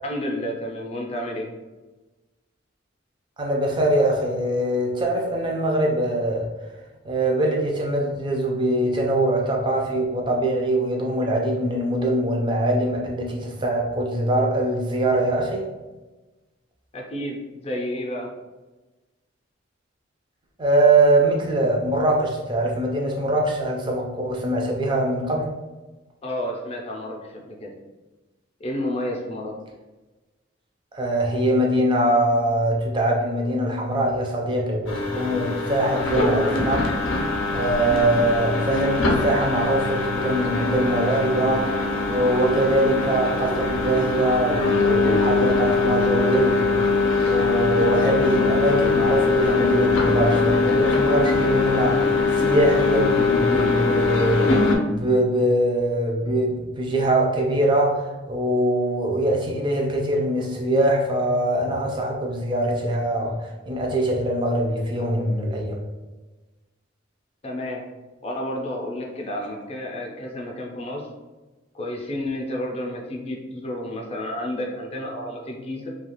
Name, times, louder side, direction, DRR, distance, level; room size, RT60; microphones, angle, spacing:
voice 1, 0.0-1.5 16.9-18.3 26.2-27.7 28.6-29.5 67.4-67.8 68.2-71.1 71.7-75.9, left 1 dB, 30° left, 0 dB, 0.5 m, -30 dB
voice 2, 3.4-6.5 7.0-15.6 20.6-25.5 30.9-36.9 37.5-41.7 42.1-46.8 47.3-54.5 54.9-63.4 63.7-65.8, right 1 dB, 25° right, 0 dB, 0.4 m, -22 dB
sound 1, 34.9-54.8, left 3 dB, 85° left, 0.5 m, -22 dB
2.4 x 2.3 x 2.9 m, 1.2 s
head